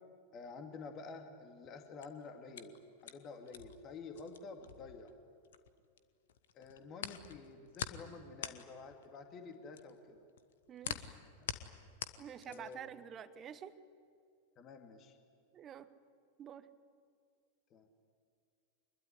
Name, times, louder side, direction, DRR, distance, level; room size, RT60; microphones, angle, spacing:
voice 1, 0.3-2.8 3.0-5.1 6.5-10.2 11.4-11.5 12.5-12.8 14.6-15.2 17.7-17.9, left 4 dB, 30° left, 4 dB, 2.4 m, -50 dB
sound 1, 1.8-6.0 6.3-12.9, left 9 dB, 60° left, 1.3 m, -45 dB
voice 2, 10.7-11.2 12.2-13.8 15.5-15.9 16.4-16.7, right 9 dB, 25° right, 12 dB, 1.2 m, -48 dB
25.0 x 21.5 x 9.9 m, 2.2 s
figure-of-eight pair, 90°, 0 cm